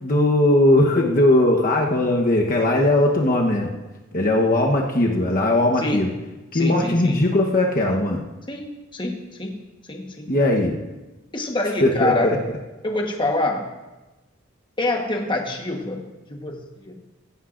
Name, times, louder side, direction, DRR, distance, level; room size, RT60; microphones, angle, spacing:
voice 1, 0.0-3.7 4.1-6.1 6.5-8.2 10.3-10.8 11.8-12.4, left 1 dB, 40° left, 0 dB, 1.1 m, -19 dB
voice 2, 6.5-7.2 8.5-9.5 9.9-10.3 11.3-12.3 12.8-13.7 14.8-17.0, left 2 dB, 25° left, 2 dB, 1.2 m, -26 dB
16.0 x 15.5 x 2.6 m, 1.1 s
head